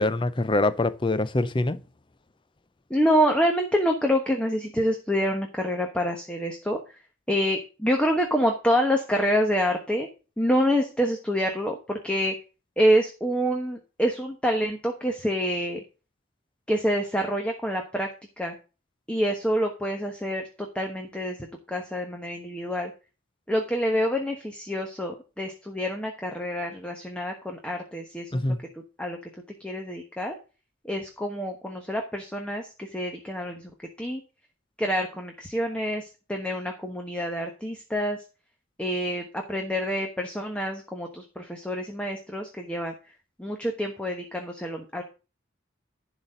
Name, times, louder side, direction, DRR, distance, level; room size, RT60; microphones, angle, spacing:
voice 1, 0.0-1.8 28.3-28.6, left 2 dB, 25° left, 0.5 m, -24 dB
voice 2, 2.9-6.8 7.3-10.1 10.4-12.3 12.8-15.8 16.7-18.1 18.4-18.5 19.1-20.5 20.7-21.4 21.7-22.9 23.5-28.4 29.0-29.2 29.6-30.4 30.8-33.7 34.0-34.2 34.8-36.0 36.3-38.2 38.8-42.9 43.4-45.0, equal, 5° left, 1.2 m, -27 dB
11.5 x 4.1 x 8.0 m
head